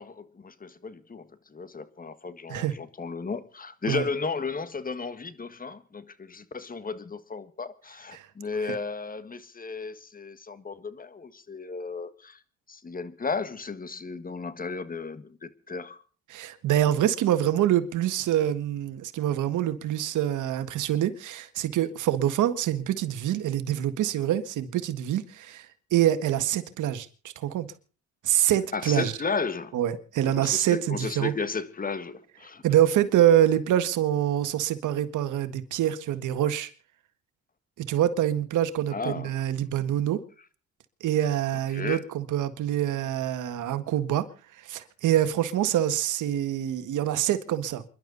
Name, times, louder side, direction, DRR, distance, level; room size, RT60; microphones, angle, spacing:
voice 1, 0.0-12.4 12.7-16.0 28.7-29.8 30.3-32.6 38.9-39.3 41.7-42.0, left 4 dB, 30° left, 1.7 m, -34 dB
voice 2, 16.3-27.7 28.2-29.1 29.7-31.3 32.6-36.7 37.8-40.2 41.0-44.3 44.5-47.8, right 11 dB, 80° right, 1.8 m, -25 dB
28.0 x 11.5 x 4.0 m
cardioid pair, 90°, 30 cm